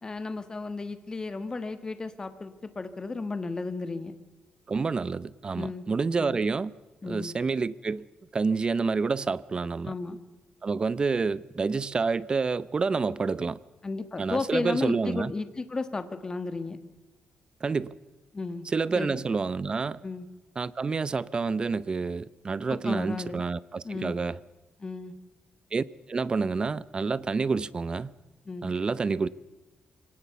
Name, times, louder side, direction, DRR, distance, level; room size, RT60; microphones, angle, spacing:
voice 1, 0.0-4.2 5.5-5.8 6.2-6.4 7.0-7.3 9.8-10.2 13.8-16.8 18.3-18.7 18.9-19.2 20.0-20.3 22.7-23.4 23.8-24.1 24.8-25.1 28.5-28.7, left 3 dB, 25° left, 1.5 m, -34 dB
voice 2, 4.7-6.7 7.1-8.0 8.3-9.9 10.6-13.6 14.2-15.3 17.6-17.9 18.7-20.0 20.6-24.4 25.7-28.1 28.6-29.3, right 4 dB, 30° right, 0.6 m, -28 dB
24.5 x 18.5 x 6.9 m
wide cardioid pair, 145°, 3 cm